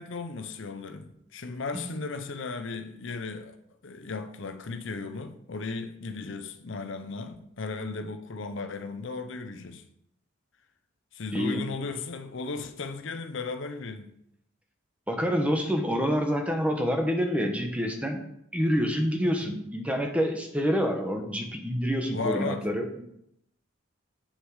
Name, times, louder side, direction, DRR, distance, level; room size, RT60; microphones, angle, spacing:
voice 1, 0.0-3.6 3.8-9.8 11.1-14.1 19.4-19.6 22.1-22.7, left 4 dB, 65° left, 0.7 m, -35 dB
voice 2, 11.3-11.7 15.1-18.2 18.5-23.0, equal, 5° right, 0.9 m, -27 dB
8.2 x 6.3 x 4.8 m
head